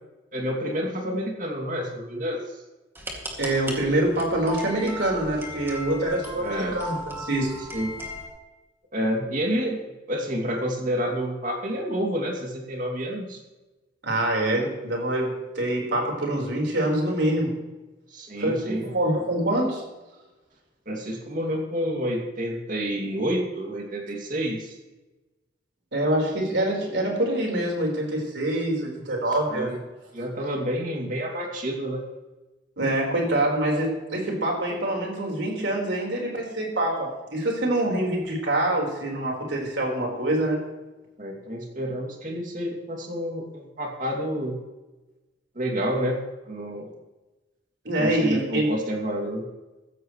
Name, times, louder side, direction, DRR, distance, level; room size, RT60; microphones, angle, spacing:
voice 1, 0.3-2.5 6.4-6.8 7.7-7.9 8.9-9.8 10.1-13.4 18.1-18.9 20.9-24.7 29.5-29.8 30.1-32.0 41.2-44.6 45.5-46.9 48.0-49.4, equal, 45° right, 1 dB, 2.6 m, -29 dB
sound 1, 2.9-8.3, equal, 15° right, 2.4 m, -37 dB
voice 2, 3.4-7.5 14.0-17.6 18.4-19.8 25.9-29.7 32.8-40.6 47.8-48.7, right 1 dB, 80° right, -1 dB, 4.5 m, -25 dB
15.0 x 14.5 x 3.2 m, 1.1 s
head